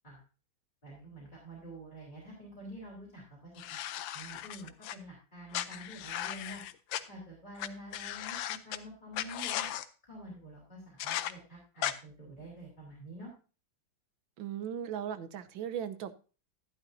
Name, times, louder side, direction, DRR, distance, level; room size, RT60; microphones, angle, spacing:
voice 1, 0.8-3.4 3.7-3.8 4.1-6.6 7.1-9.7 10.0-13.3, right 1 dB, 25° left, -5 dB, 3.8 m, -48 dB
sound 1, 3.6-4.9 5.5-7.0 7.6-7.7 7.9-8.8 9.1-9.8 11.0-11.3 11.8-11.9, left 12 dB, 85° left, 1.4 m, -36 dB
voice 2, 14.4-16.1, right 9 dB, 85° right, 11 dB, 1.6 m, -37 dB
12.0 x 11.0 x 2.6 m, 0.35 s
omnidirectional pair, 2.1 m